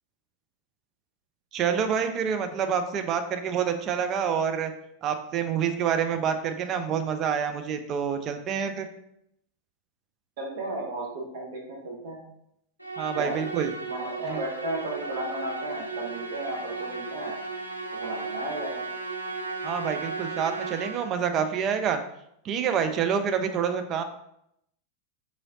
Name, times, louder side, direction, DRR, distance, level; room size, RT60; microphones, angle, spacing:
voice 1, 1.5-4.7 5.0-8.9 13.0-13.7 14.3-14.4 19.6-22.0 22.4-24.0, right 7 dB, 30° right, 7 dB, 0.4 m, -27 dB
voice 2, 10.4-12.2 13.2-13.3 13.9-17.4 17.9-18.9, right 1 dB, 55° right, -2 dB, 0.7 m, -34 dB
Musical instrument, 12.8-21.3, right 4 dB, 85° left, 0.4 m, -35 dB
3.6 x 3.1 x 2.6 m, 0.76 s
figure-of-eight pair, 90°, 0 cm